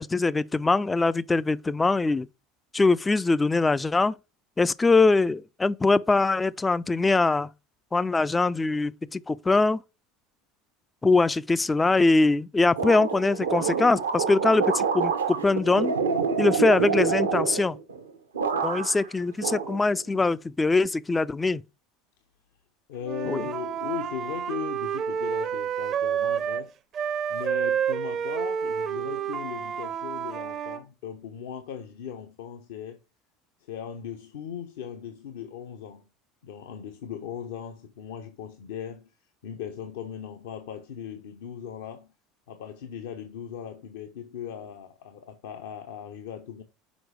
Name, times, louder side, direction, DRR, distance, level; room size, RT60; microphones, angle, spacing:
voice 1, 0.0-2.3 2.7-4.1 4.6-7.5 7.9-9.8 11.0-15.9 16.4-17.8 18.6-21.6 23.3-23.4, left 3 dB, 15° left, 0.3 m, -22 dB
sound 1, 12.8-18.0 18.3-19.1 19.4-20.3, right 5 dB, 75° right, 0.7 m, -27 dB
voice 2, 22.9-26.7 27.3-33.0 33.7-36.0 36.4-39.1 39.4-42.1 42.5-46.6, left 8 dB, 65° left, 0.7 m, -38 dB
Wind instrument woodwind instrument, 23.0-26.7 26.9-30.8, right 8 dB, 40° right, 0.6 m, -29 dB
6.2 x 4.6 x 4.7 m
figure-of-eight pair, 70°, 0 cm